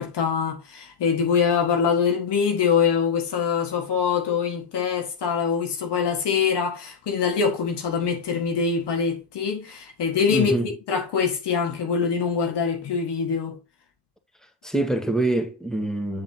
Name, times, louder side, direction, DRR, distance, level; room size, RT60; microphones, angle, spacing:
voice 1, 0.0-13.6, left 6 dB, 85° left, 1.9 m, -24 dB
voice 2, 10.3-10.7 14.6-16.2, right 2 dB, ahead, 1.9 m, -25 dB
9.4 x 5.0 x 3.0 m
supercardioid pair, 45°, 40 cm